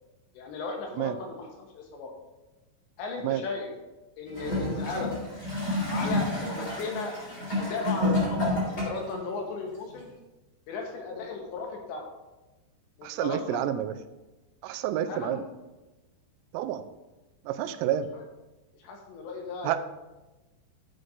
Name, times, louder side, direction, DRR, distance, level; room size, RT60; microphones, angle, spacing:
voice 1, 0.3-2.1 3.0-3.7 4.2-5.1 5.9-7.1 7.5-10.1 10.7-12.1 13.0-13.6 15.1-15.4 18.1-18.2 18.8-19.8, left 4 dB, 75° left, 1 dB, 3.0 m, -36 dB
Gurgling / Toilet flush, 4.3-9.1 10.0-10.1, left 1 dB, 25° left, 3.0 m, -29 dB
voice 2, 13.0-13.9 14.6-15.4 16.5-16.8 17.5-18.1 19.6-19.8, right 11 dB, 85° right, 10 dB, 3.1 m, -29 dB
12.5 x 7.7 x 2.6 m, 1.1 s
omnidirectional pair, 5.8 m